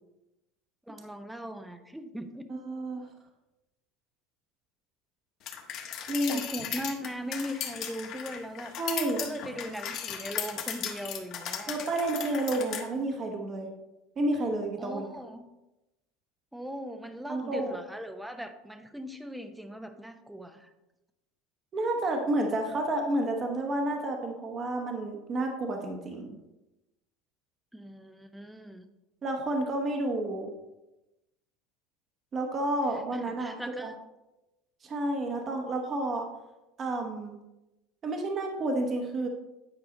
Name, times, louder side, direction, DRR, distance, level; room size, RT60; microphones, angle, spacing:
voice 1, 0.9-2.5 6.3-8.8 9.2-11.8 14.8-15.5 16.5-20.7 27.7-28.9 33.1-34.0, equal, 5° right, 8 dB, 0.6 m, -39 dB
voice 2, 2.5-3.1 6.1-6.4 8.8-9.2 11.7-13.7 14.2-15.1 17.3-17.8 21.7-26.4 29.2-30.5 32.3-33.9 34.8-36.3 36.8-37.4 38.0-39.3, right 1 dB, 30° right, 2 dB, 1.0 m, -30 dB
sound 1, 5.5-12.8, left 9 dB, 50° left, 1.2 m, -36 dB
9.7 x 4.8 x 3.8 m, 0.98 s
supercardioid pair, 135°, 0 cm